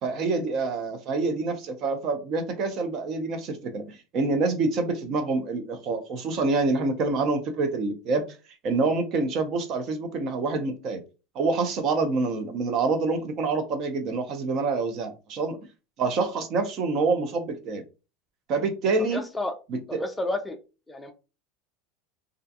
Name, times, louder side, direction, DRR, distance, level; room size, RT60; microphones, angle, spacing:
voice 1, 0.0-8.2 8.6-11.0 11.4-15.6 16.0-17.8 18.5-19.2 19.7-20.0, right 3 dB, 45° right, 8 dB, 0.6 m, -26 dB
voice 2, 19.1-19.5 19.9-20.6 20.9-21.1, left 2 dB, 10° left, 4 dB, 0.3 m, -30 dB
2.4 x 2.3 x 2.6 m, 0.30 s
supercardioid pair, 140°, 0 cm